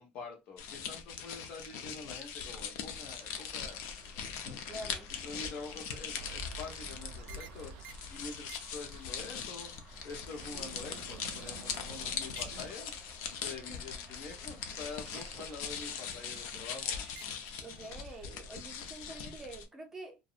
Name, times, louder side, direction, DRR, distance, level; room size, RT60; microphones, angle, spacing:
voice 1, 0.0-3.8 5.1-7.7 8.1-9.7 10.0-12.9 13.4-17.0, left 4 dB, 50° left, 1.0 m, -46 dB
sound 1, 0.6-19.6, left 7 dB, 75° left, 0.5 m, -41 dB
sound 2, 3.0-16.6, right 1 dB, 10° left, 1.2 m, -57 dB
voice 2, 4.4-5.1 13.7-13.8 17.6-20.2, right 2 dB, 10° right, 0.5 m, -46 dB
sound 3, 6.2-14.1 14.5-18.2, right 7 dB, 80° right, 0.4 m, -52 dB
2.5 x 2.0 x 2.4 m
cardioid pair, 165°, 3 cm